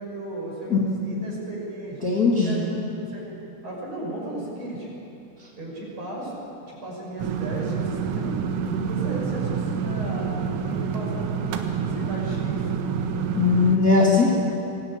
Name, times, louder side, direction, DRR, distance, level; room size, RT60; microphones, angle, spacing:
voice 1, 0.0-2.0 2.3-3.4 3.6-4.9 5.6-8.3 8.8-11.3 11.8-12.7, right 1 dB, 30° right, -3 dB, 6.4 m, -35 dB
voice 2, 2.0-2.6 13.4-14.3, left 4 dB, 50° left, -4 dB, 1.0 m, -19 dB
sound 1, 7.2-13.8, right 6 dB, 90° right, 4.1 m, -27 dB
25.0 x 18.0 x 8.8 m, 2.8 s
omnidirectional pair, 6.0 m